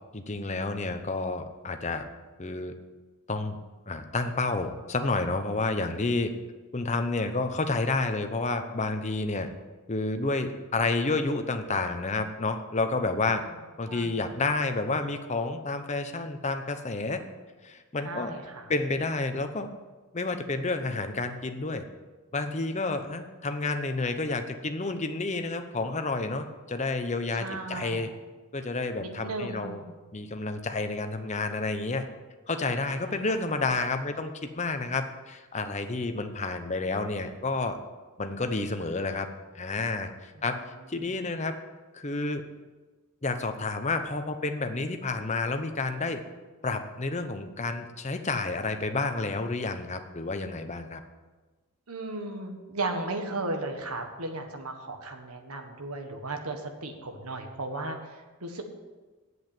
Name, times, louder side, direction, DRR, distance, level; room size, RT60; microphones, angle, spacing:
voice 1, 0.1-2.0 2.4-2.7 3.3-3.6 3.9-6.3 6.7-9.5 9.9-13.4 13.8-17.2 17.6-18.3 18.7-19.7 20.1-21.8 22.3-28.1 28.5-29.8 30.1-32.1 32.5-37.8 38.2-39.3 39.5-40.6 40.9-41.6 41.9-42.4 43.2-46.2 46.6-51.0, left 3 dB, 30° left, 7 dB, 0.8 m, -30 dB
voice 2, 13.9-14.3 18.0-18.7 27.3-28.1 29.0-30.0 32.9-33.4 40.4-40.5 41.0-41.1 51.9-58.6, right 2 dB, 85° right, 4 dB, 1.6 m, -36 dB
8.0 x 8.0 x 9.0 m, 1.3 s
head